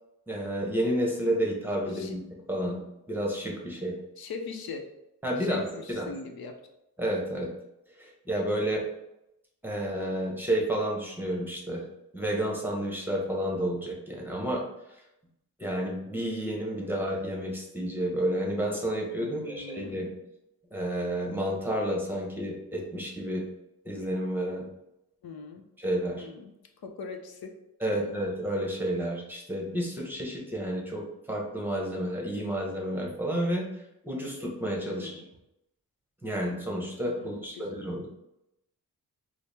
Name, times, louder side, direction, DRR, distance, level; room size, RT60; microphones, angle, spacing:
voice 1, 0.3-2.2 2.5-2.8 3.1-4.0 5.2-5.6 5.9-6.1 7.0-7.5 8.0-8.8 9.6-11.8 12.1-14.6 15.6-20.2 20.7-23.4 23.8-24.6 25.8-26.3 27.8-33.7 34.0-35.2 36.2-38.1, right 1 dB, 5° right, -2 dB, 0.9 m, -30 dB
voice 2, 4.2-4.8 5.4-6.6 19.2-20.0 25.2-25.6 26.2-26.5 26.8-27.5 27.9-28.1 34.9-35.3 37.2-37.7, left 4 dB, 80° left, 5 dB, 0.6 m, -41 dB
4.5 x 2.0 x 3.3 m, 0.86 s
wide cardioid pair, 120°, 36 cm